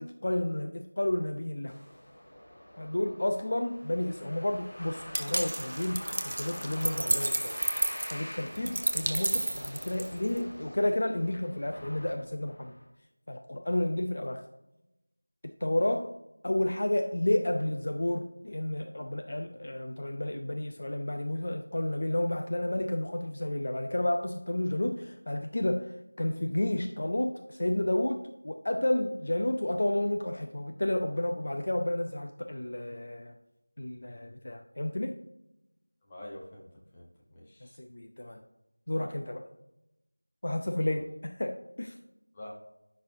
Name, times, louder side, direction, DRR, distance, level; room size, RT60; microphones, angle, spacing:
voice 1, 0.0-1.7 2.8-7.6 8.1-12.8 13.3-14.4 15.4-16.1 16.4-33.4 33.8-35.2 37.8-38.4 38.9-39.5 40.4-42.0, left 1 dB, 35° left, 5 dB, 0.5 m, -31 dB
sound 1, 1.7-12.8, equal, 60° left, 1.9 m, -45 dB
sound 2, 5.1-10.4, right 1 dB, 40° right, 0.4 m, -31 dB
voice 2, 36.0-37.8 40.8-41.0 42.3-42.6, left 1 dB, 10° left, -5 dB, 0.8 m, -47 dB
9.7 x 6.2 x 2.6 m, 0.90 s
figure-of-eight pair, 180°, 0 cm